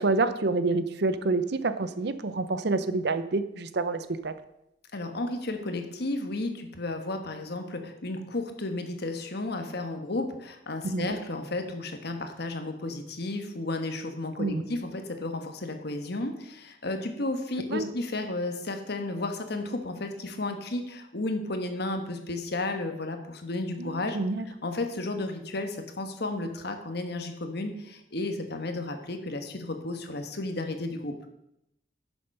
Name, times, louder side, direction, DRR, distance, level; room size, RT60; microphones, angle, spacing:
voice 1, 0.0-4.4 10.8-11.2 14.4-14.6 17.7-17.9 23.8-24.5, right 3 dB, 65° right, 12 dB, 0.7 m, -28 dB
voice 2, 4.9-24.2 24.6-31.1, left 2 dB, 65° left, 6 dB, 1.4 m, -33 dB
11.0 x 7.1 x 5.4 m, 0.82 s
head